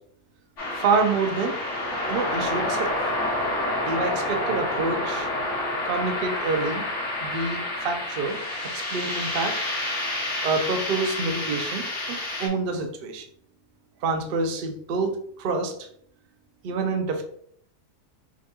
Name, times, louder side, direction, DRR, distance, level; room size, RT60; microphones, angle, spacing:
sound 1, 0.6-12.5, left 1 dB, 50° left, 1.4 m, -29 dB
voice 1, 0.8-1.6 2.1-3.0 3.9-5.3 5.8-6.8 7.2-8.4 8.7-9.6 10.4-13.2 14.0-15.7 16.6-17.2, right 4 dB, 70° right, 5 dB, 0.5 m, -27 dB
5.0 x 2.3 x 2.7 m, 0.64 s
omnidirectional pair, 1.6 m